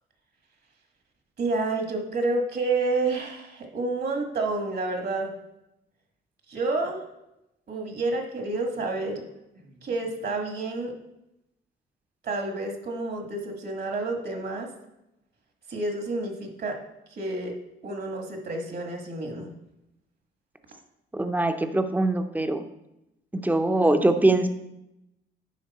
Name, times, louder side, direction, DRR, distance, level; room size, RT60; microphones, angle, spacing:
voice 1, 1.4-5.3 6.5-7.0 7.7-9.3 9.8-10.9 12.2-14.7 15.7-16.8 17.1-17.5 17.8-19.5, right 3 dB, 55° right, 3 dB, 1.6 m, -29 dB
voice 2, 21.1-22.6 23.3-24.5, right 2 dB, 10° right, 8 dB, 0.7 m, -22 dB
10.0 x 5.0 x 4.2 m, 0.89 s
cardioid pair, 90°, 20 cm